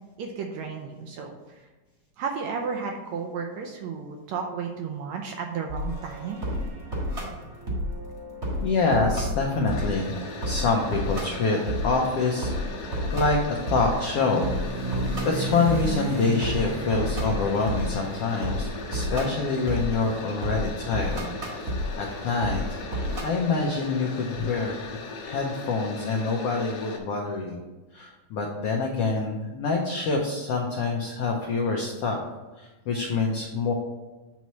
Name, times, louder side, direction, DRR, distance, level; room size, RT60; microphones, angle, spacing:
voice 1, 0.2-1.7 2.2-6.5 9.9-10.1, right 5 dB, 75° right, 2 dB, 1.7 m, -33 dB
sound 1, 5.7-23.2, equal, 35° right, 1.2 m, -32 dB
voice 2, 8.6-10.2 10.4-12.5 13.1-13.4 13.7-14.5 15.2-21.3 22.0-22.6 22.9-27.6 27.9-32.2 32.6-33.7, left 4 dB, 85° left, 0 dB, 1.3 m, -26 dB
sound 2, 9.7-27.0, left 4 dB, 65° left, 1.7 m, -39 dB
sound 3, 12.7-20.4, right 3 dB, 50° right, 1.6 m, -35 dB
8.2 x 3.1 x 5.7 m, 1.2 s
omnidirectional pair, 3.7 m